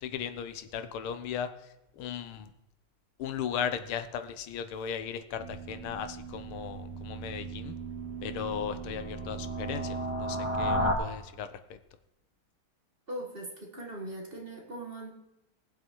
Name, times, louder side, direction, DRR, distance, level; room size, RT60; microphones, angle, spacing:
voice 1, 0.0-1.5 2.0-2.5 3.2-7.8 8.2-11.5, left 8 dB, 85° left, 10 dB, 1.8 m, -36 dB
sound 1, 5.4-10.9, right 1 dB, 5° right, 2.5 m, -34 dB
voice 2, 13.1-15.2, right 1 dB, 25° right, 0 dB, 1.9 m, -40 dB
19.0 x 7.8 x 4.6 m, 0.90 s
omnidirectional pair, 2.3 m